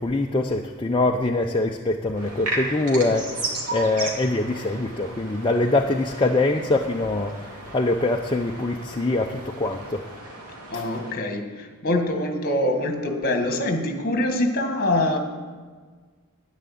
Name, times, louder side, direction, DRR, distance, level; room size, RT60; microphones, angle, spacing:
voice 1, 0.0-3.4 3.7-10.0 10.7-10.8, left 2 dB, 20° left, 1 dB, 0.6 m, -24 dB
sound 1, 2.1-11.1, right 2 dB, 90° right, 2.8 m, -35 dB
voice 2, 10.7-15.2, left 1 dB, 45° left, 5 dB, 1.8 m, -24 dB
11.5 x 10.0 x 8.5 m, 1.5 s
head